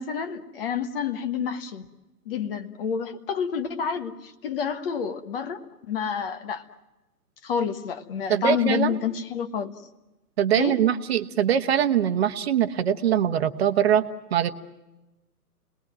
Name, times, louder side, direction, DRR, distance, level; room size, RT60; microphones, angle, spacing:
voice 1, 0.0-1.9 2.2-6.6 7.4-9.7 10.5-10.8, left 7 dB, 35° left, 1.5 m, -29 dB
voice 2, 8.3-9.0 10.4-14.0 14.3-14.5, right 9 dB, 40° right, 1.2 m, -22 dB
29.0 x 20.5 x 7.6 m
figure-of-eight pair, 135°, 47 cm